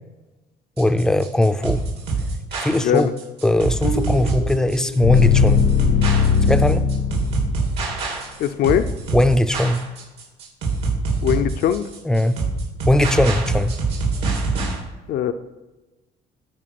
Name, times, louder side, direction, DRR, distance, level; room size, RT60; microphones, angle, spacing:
voice 1, 0.8-1.9 2.6-3.1 3.4-5.7 6.0-6.1 6.5-6.9 9.1-9.8 12.0-12.4 12.9-13.7, left 1 dB, 5° left, 12 dB, 0.4 m, -19 dB
sound 1, 0.8-14.8, right 4 dB, 80° right, 3.1 m, -25 dB
voice 2, 2.7-3.1 8.4-8.8 11.2-11.9 15.1-15.3, left 10 dB, 65° left, 10 dB, 0.5 m, -20 dB
sound 2, 3.8-7.9, left 7 dB, 85° left, 0.9 m, -19 dB
11.5 x 4.5 x 5.9 m, 1.1 s
cardioid pair, 110°, 17 cm